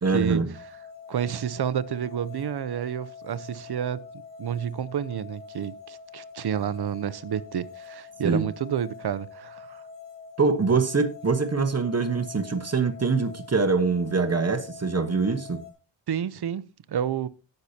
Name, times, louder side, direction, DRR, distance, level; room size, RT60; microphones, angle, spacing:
voice 1, 0.0-0.5 8.2-8.5 10.4-15.7, right 4 dB, 35° right, 1.2 m, -24 dB
sound 1, 0.5-15.7, left 6 dB, 70° left, 3.2 m, -45 dB
voice 2, 1.1-4.0 4.4-9.8 16.1-17.3, right 9 dB, 60° right, 0.7 m, -30 dB
17.5 x 6.7 x 2.8 m
cardioid pair, 70°, 45 cm